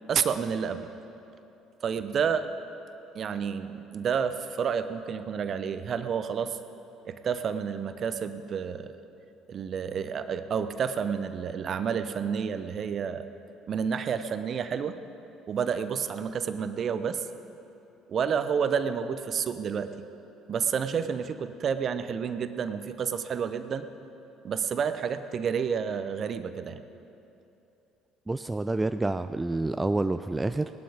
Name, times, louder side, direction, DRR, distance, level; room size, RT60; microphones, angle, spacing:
voice 1, 0.1-0.9 1.8-2.5 3.1-6.6 7.0-8.9 9.5-13.3 13.7-15.0 15.5-17.3 18.1-20.1 20.5-23.9 24.4-26.8, right 7 dB, 45° right, 11 dB, 0.8 m, -30 dB
voice 2, 28.3-30.7, right 2 dB, 15° right, 10 dB, 0.4 m, -28 dB
19.0 x 12.0 x 5.1 m, 2.8 s
hypercardioid pair, 55°, 0 cm